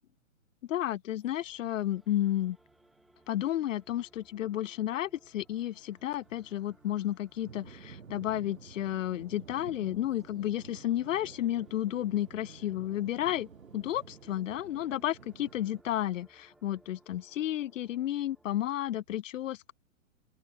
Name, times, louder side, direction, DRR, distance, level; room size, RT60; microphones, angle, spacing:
voice 1, 0.7-2.6 3.3-19.7, left 12 dB, 70° left, 0.5 m, -32 dB
sound 1, 1.2-19.0, right 2 dB, ahead, 0.3 m, -64 dB
sound 2, 5.1-15.8, right 6 dB, 90° right, 1.4 m, -52 dB
open air
hypercardioid pair, 130°, 40 cm